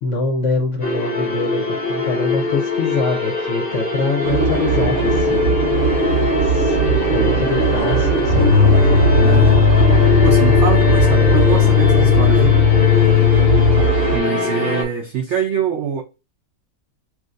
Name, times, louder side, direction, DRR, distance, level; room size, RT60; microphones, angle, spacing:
voice 1, 0.0-5.5 6.4-8.6, left 3 dB, 60° left, 0.8 m, -24 dB
sound 1, 0.8-14.8, left 3 dB, 30° left, 0.9 m, -22 dB
sound 2, 4.2-14.2, right 5 dB, 40° right, 1.0 m, -20 dB
sound 3, 8.3-13.9, left 10 dB, 80° left, 1.2 m, -15 dB
voice 2, 9.1-9.6 10.2-12.6 14.1-16.0, right 8 dB, 80° right, 0.6 m, -23 dB
6.1 x 2.4 x 2.5 m
omnidirectional pair, 1.9 m